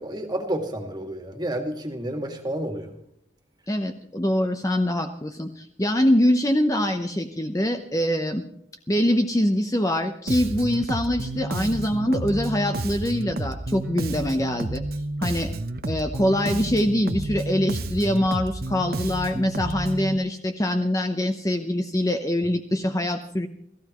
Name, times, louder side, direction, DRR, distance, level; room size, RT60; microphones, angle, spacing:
voice 1, 0.0-2.9, right 1 dB, 20° right, 4 dB, 2.1 m, -30 dB
voice 2, 3.7-8.4 8.9-14.8 15.2-15.5 15.9-23.5, left 1 dB, 15° left, 6 dB, 0.8 m, -24 dB
Bass guitar, 10.3-20.2, right 2 dB, 50° right, 0.9 m, -30 dB
29.0 x 15.0 x 3.1 m, 0.72 s
head